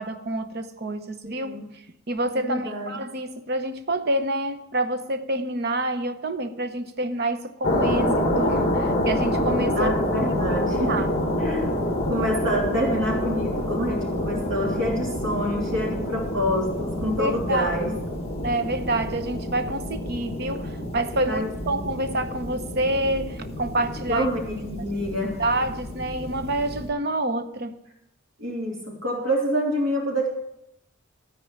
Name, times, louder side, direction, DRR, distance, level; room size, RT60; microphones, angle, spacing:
voice 1, 0.0-1.6 2.1-9.9 10.5-11.1 17.2-17.7 18.4-24.3 25.4-27.8, right 1 dB, 50° right, 0.8 m, -27 dB
voice 2, 1.2-1.6 2.3-3.0 9.7-11.1 11.4-17.9 21.3-21.8 24.0-25.3 28.4-30.3, equal, 70° right, 3.1 m, -27 dB
sound 1, 7.6-26.9, left 1 dB, 30° left, 1.4 m, -28 dB
13.5 x 4.6 x 8.9 m
head